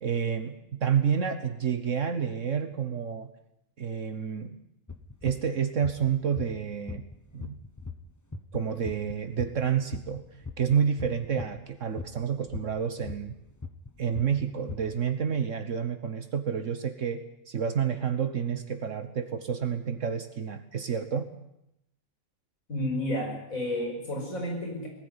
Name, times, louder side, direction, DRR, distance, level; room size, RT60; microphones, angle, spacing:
voice 1, 0.0-3.3 3.8-4.6 5.2-7.0 7.3-7.6 8.5-10.2 10.6-13.3 14.0-21.3, right 7 dB, 65° right, 9 dB, 1.5 m, -29 dB
sound 1, 4.9-11.6 11.9-15.0, left 4 dB, 15° left, 0.8 m, -39 dB
voice 2, 22.7-24.9, left 1 dB, 75° left, 1 dB, 5.9 m, -31 dB
19.5 x 15.0 x 9.8 m, 0.82 s
omnidirectional pair, 1.4 m